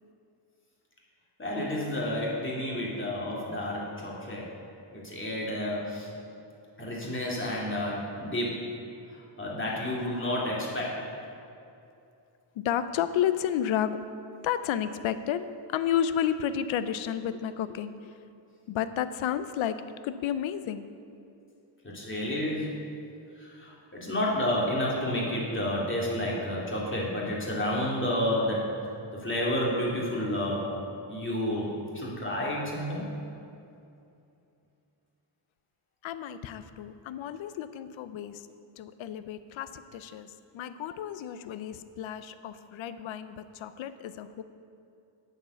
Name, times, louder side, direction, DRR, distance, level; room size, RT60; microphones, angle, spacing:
voice 1, 1.4-4.5 4.9-6.1 6.8-8.7 9.1-11.1 21.8-22.8 23.4-28.7 29.1-30.6 31.1-33.1, left 1 dB, 25° left, -4 dB, 2.7 m, -30 dB
voice 2, 12.6-14.0 14.4-18.1 18.7-19.8 20.0-20.9 36.0-38.5 38.8-44.4, left 9 dB, 75° left, 12 dB, 0.6 m, -31 dB
8.9 x 7.4 x 6.8 m, 2.6 s
cardioid pair, 105°, 47 cm